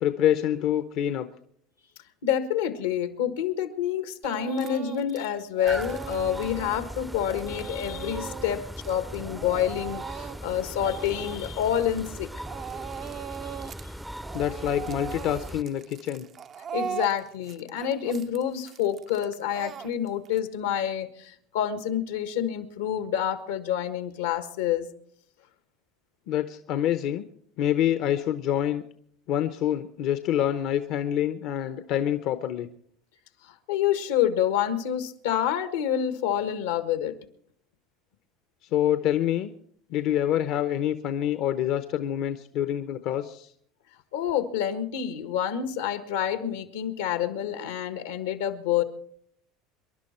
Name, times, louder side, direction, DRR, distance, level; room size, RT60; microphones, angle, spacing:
voice 1, 0.0-1.3 14.3-16.2 26.3-27.3 27.6-28.8 29.3-32.7 38.7-39.5 39.9-43.5, left 11 dB, 60° left, 10 dB, 0.9 m, -26 dB
voice 2, 2.2-12.3 13.4-13.5 16.7-24.9 33.7-37.1 44.1-48.8, left 10 dB, 85° left, 10 dB, 1.5 m, -28 dB
Speech / Crying sobbing, 4.2-5.3 5.6-12.2 12.5-13.9 14.2-20.4, right 8 dB, 45° right, 0.6 m, -39 dB
sound 1, 5.6-15.6, equal, 5° right, 0.6 m, -39 dB
26.5 x 11.5 x 4.4 m, 0.64 s
hypercardioid pair, 90°, 0 cm